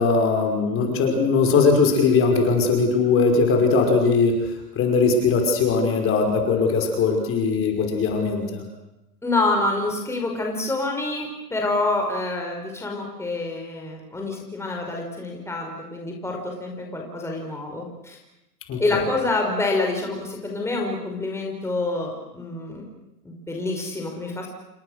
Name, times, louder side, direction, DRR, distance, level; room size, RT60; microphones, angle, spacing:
voice 1, 0.0-4.4 4.8-8.6 18.7-19.0, left 4 dB, 25° left, 3 dB, 5.4 m, -20 dB
voice 2, 9.2-18.2 18.8-22.9 23.2-24.5, left 2 dB, 5° left, 1 dB, 5.2 m, -27 dB
29.5 x 24.0 x 6.6 m, 0.91 s
hypercardioid pair, 125°, 49 cm